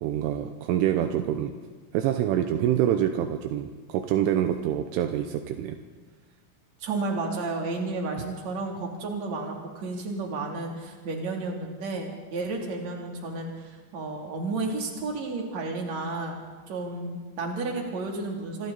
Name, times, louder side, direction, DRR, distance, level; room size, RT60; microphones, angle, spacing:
voice 1, 0.0-1.5 1.9-5.8, right 11 dB, 80° right, 7 dB, 3.2 m, -26 dB
voice 2, 6.8-16.4 16.7-18.7, right 3 dB, 40° right, 0 dB, 3.6 m, -32 dB
27.5 x 26.0 x 4.2 m, 1.4 s
omnidirectional pair, 6.0 m